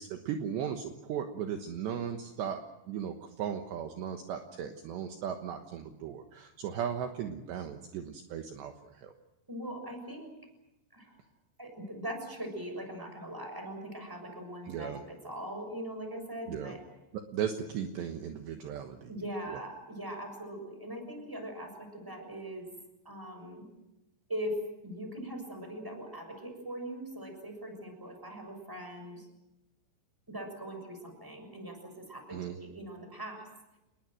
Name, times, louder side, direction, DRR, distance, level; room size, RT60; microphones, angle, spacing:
voice 1, 0.0-2.6 2.9-9.1 14.7-15.0 16.5-16.8 17.1-19.1 19.5-19.6 32.3-32.6, right 8 dB, 70° right, 5 dB, 3.2 m, -37 dB
voice 2, 9.5-10.3 10.9-11.2 11.6-16.8 19.1-22.7 23.0-23.6 24.3-24.6 24.8-29.3 30.3-33.4, equal, 5° right, 5 dB, 6.2 m, -41 dB
28.5 x 21.5 x 7.8 m, 0.97 s
omnidirectional pair, 5.9 m